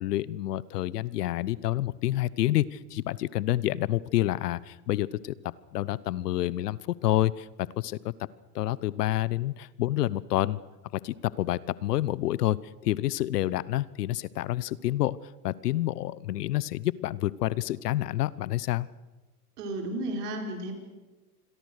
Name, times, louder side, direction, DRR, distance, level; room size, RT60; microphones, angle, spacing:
voice 1, 0.0-8.1 8.5-10.6 10.9-15.2 15.4-18.9, left 14 dB, 75° left, 21 dB, 1.0 m, -28 dB
voice 2, 19.6-20.7, right 1 dB, 70° right, 3 dB, 5.7 m, -33 dB
27.5 x 22.5 x 6.6 m, 1.2 s
hypercardioid pair, 95°, 47 cm